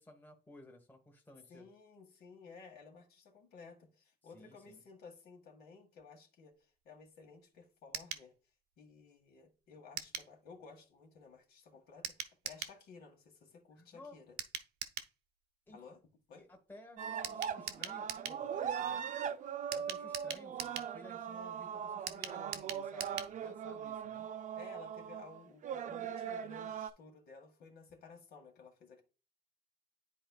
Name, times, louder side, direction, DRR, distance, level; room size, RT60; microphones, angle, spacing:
voice 1, 0.0-1.6 4.3-4.8 13.8-14.1 15.7-15.8 16.4-19.0 19.7-24.3, left 1 dB, 10° left, 1.5 m, -56 dB
voice 2, 1.5-8.3 8.8-14.4 15.7-16.0 16.3-16.4 24.6-29.0, left 5 dB, 70° left, 1.9 m, -56 dB
sound 1, 7.9-8.3 10.0-10.3 12.0-12.8 14.4-15.1 17.2-18.4 19.7-20.9 22.1-23.3 23.6-23.7 24.0-24.1, right 10 dB, 80° right, 0.7 m, -42 dB
sound 2, 17.0-26.9, right 8 dB, 45° right, 0.5 m, -40 dB
10.0 x 4.4 x 2.3 m
cardioid pair, 110°, 17 cm